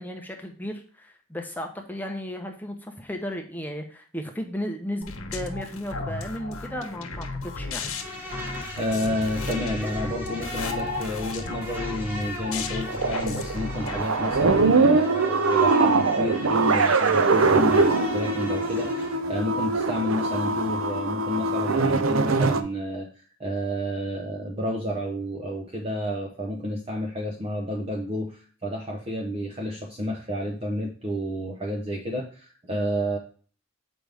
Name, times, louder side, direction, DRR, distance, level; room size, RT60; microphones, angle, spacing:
voice 1, 0.0-7.9, equal, 10° left, 3 dB, 0.7 m, -34 dB
sound 1, 5.0-14.6, left 3 dB, 80° left, 1.2 m, -34 dB
Insect, 7.8-19.2, left 1 dB, 10° right, 1.3 m, -38 dB
voice 2, 8.8-33.2, equal, 25° right, 1 dB, 0.7 m, -30 dB
sound 2, 12.9-22.6, right 3 dB, 70° right, 0.6 m, -22 dB
7.7 x 5.2 x 3.4 m, 0.42 s
head